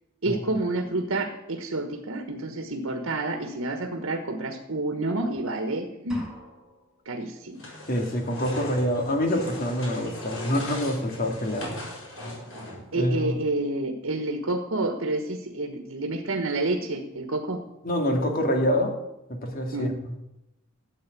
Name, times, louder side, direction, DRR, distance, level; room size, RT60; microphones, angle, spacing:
voice 1, 0.2-6.3 7.0-7.7 12.9-17.6 19.7-19.9, right 2 dB, 90° right, 5 dB, 1.4 m, -29 dB
sound 1, 6.1-7.1, equal, 5° right, 3.3 m, -43 dB
sound 2, 7.6-13.0, left 1 dB, 70° left, 6.8 m, -39 dB
voice 2, 7.9-11.8 12.9-13.3 17.8-19.0 19.3-20.1, equal, 45° left, 3 dB, 2.4 m, -26 dB
13.5 x 7.9 x 8.5 m, 0.91 s
head